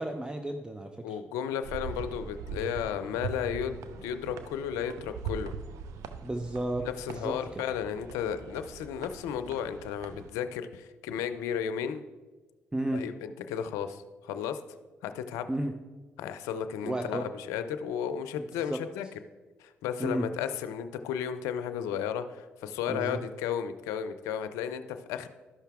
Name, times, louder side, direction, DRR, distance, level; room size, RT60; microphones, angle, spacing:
voice 1, 0.0-1.0 6.2-7.4 12.7-13.0 15.5-15.7 16.8-17.2 18.7-18.8 20.0-20.3 22.9-23.2, right 1 dB, 15° right, 6 dB, 0.7 m, -32 dB
voice 2, 1.0-5.5 6.8-12.0 12.9-14.6 15.0-15.5 16.2-19.1 19.6-25.3, left 8 dB, 85° left, 10 dB, 0.5 m, -34 dB
sound 1, 1.6-10.3, right 6 dB, 75° right, 0.6 m, -41 dB
12.5 x 5.6 x 3.5 m, 1.3 s
supercardioid pair, 50°, 5 cm